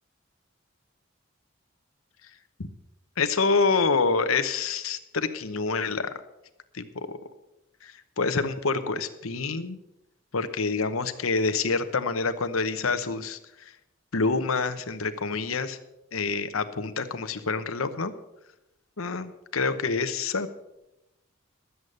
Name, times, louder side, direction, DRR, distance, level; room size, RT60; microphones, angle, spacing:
voice 1, 3.2-6.2 6.7-7.2 7.8-9.8 10.3-13.7 14.1-15.8 16.1-18.1 19.0-20.5, left 4 dB, 90° left, 10 dB, 0.9 m, -27 dB
12.5 x 8.2 x 6.5 m, 0.90 s
head